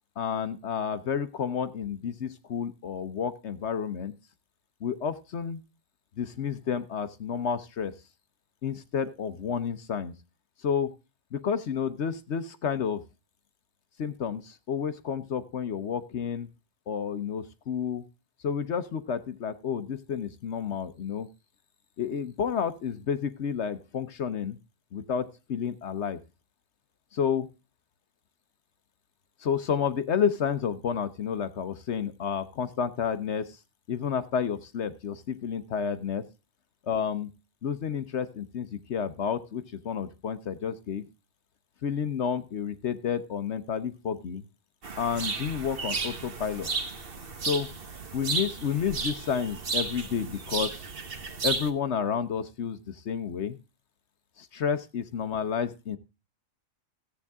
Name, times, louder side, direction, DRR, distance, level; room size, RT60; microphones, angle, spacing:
voice 1, 0.2-4.1 4.8-5.6 6.2-7.9 8.6-10.1 10.6-10.9 11.3-13.0 14.0-16.5 16.9-18.0 18.4-21.3 22.0-24.6 24.9-26.2 27.1-27.5 29.4-33.5 33.9-36.2 36.9-37.3 37.6-41.0 41.8-44.4 45.0-46.7 47.4-47.7 48.1-50.8 51.4-53.6 54.4-56.0, left 7 dB, 60° left, 12 dB, 1.1 m, -30 dB
sound 1, 44.8-51.7, right 4 dB, 45° right, 1.4 m, -33 dB
14.5 x 8.4 x 3.5 m, 0.29 s
omnidirectional pair, 1.3 m